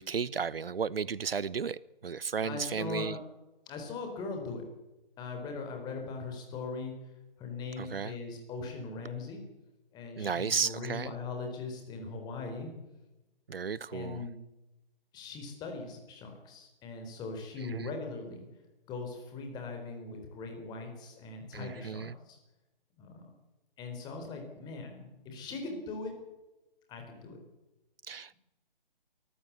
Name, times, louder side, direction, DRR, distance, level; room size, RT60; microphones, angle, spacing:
voice 1, 0.0-3.2 7.8-8.1 10.2-11.1 13.5-14.2 17.7-17.9 21.5-22.1 28.1-28.3, right 6 dB, 75° right, 0.8 m, -34 dB
voice 2, 2.4-3.2 3.7-4.6 5.2-6.9 7.4-9.4 9.9-12.7 13.9-14.4 15.1-18.4 18.9-22.4 23.0-23.2 23.8-26.1 26.9-27.4, left 4 dB, 15° left, 4.1 m, -40 dB
23.5 x 14.0 x 8.4 m
figure-of-eight pair, 150°, 29 cm